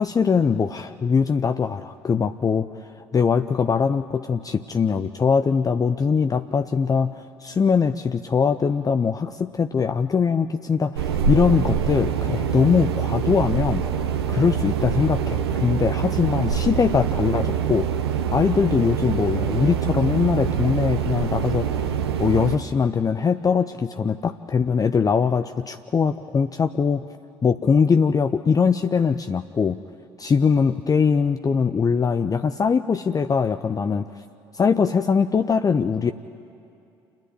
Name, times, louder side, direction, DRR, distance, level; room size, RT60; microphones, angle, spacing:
voice 1, 0.0-13.9 14.3-17.9 18.3-27.1 27.4-29.8 30.2-34.1 34.5-36.1, left 6 dB, 30° left, 10 dB, 0.6 m, -22 dB
sound 1, 10.9-22.6, right 7 dB, 80° right, 0.9 m, -25 dB
28.0 x 10.5 x 9.8 m, 2.6 s
figure-of-eight pair, 50°, 13 cm